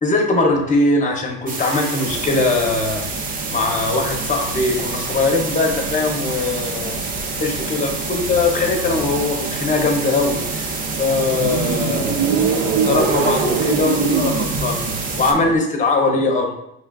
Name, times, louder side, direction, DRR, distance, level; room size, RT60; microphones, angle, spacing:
voice 1, 0.0-3.0 3.5-7.1 7.4-10.7 11.0-12.4 12.8-14.8 15.2-16.6, left 3 dB, 25° left, 1 dB, 0.7 m, -20 dB
sound 1, 1.5-15.3, right 3 dB, 25° right, 0.5 m, -28 dB
sound 2, 2.0-15.5, right 5 dB, 75° right, 0.7 m, -26 dB
5.7 x 2.3 x 2.3 m, 0.79 s
supercardioid pair, 115°, 31 cm